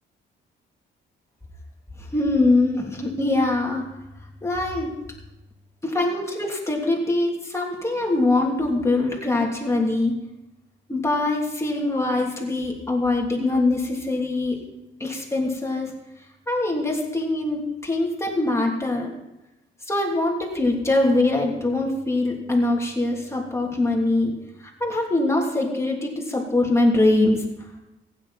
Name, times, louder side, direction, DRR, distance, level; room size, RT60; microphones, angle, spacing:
voice 1, 2.0-3.9 4.4-4.9 5.8-10.1 10.9-14.6 15.0-15.9 16.5-19.1 19.9-24.3 24.6-27.4, left 2 dB, 15° left, -1 dB, 3.1 m, -23 dB
15.5 x 9.7 x 4.3 m, 0.93 s
cardioid pair, 90°, 20 cm